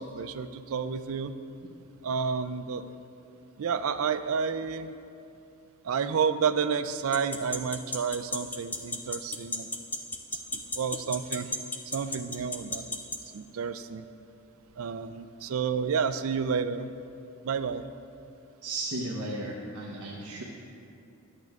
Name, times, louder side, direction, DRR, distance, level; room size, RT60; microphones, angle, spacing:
voice 1, 0.0-1.3 2.0-2.9 3.6-4.9 5.8-9.7 10.3-11.5 11.9-13.0 13.3-14.1 14.8-16.9 17.4-17.9, right 6 dB, 70° right, 11 dB, 0.4 m, -30 dB
sound 1, 7.1-13.2, left 2 dB, 5° left, 0.3 m, -32 dB
voice 2, 18.6-20.4, right 2 dB, 85° right, -3 dB, 0.9 m, -35 dB
10.0 x 8.4 x 3.5 m, 2.6 s
head